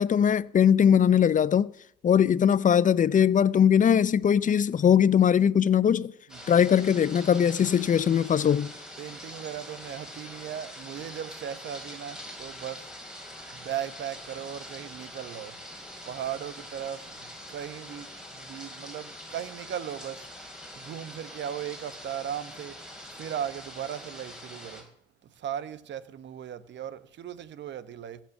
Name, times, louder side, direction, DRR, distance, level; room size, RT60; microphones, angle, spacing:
voice 1, 0.0-1.7 2.0-6.1 6.5-8.7, left 8 dB, 40° left, 0.5 m, -21 dB
sound 1, 6.3-24.8, equal, 5° right, 5.0 m, -44 dB
voice 2, 9.0-12.9 13.5-15.6 16.0-20.3 20.8-22.8 23.1-24.8 25.2-28.2, right 10 dB, 65° right, 1.0 m, -37 dB
16.0 x 7.4 x 7.1 m
cardioid pair, 90°, 20 cm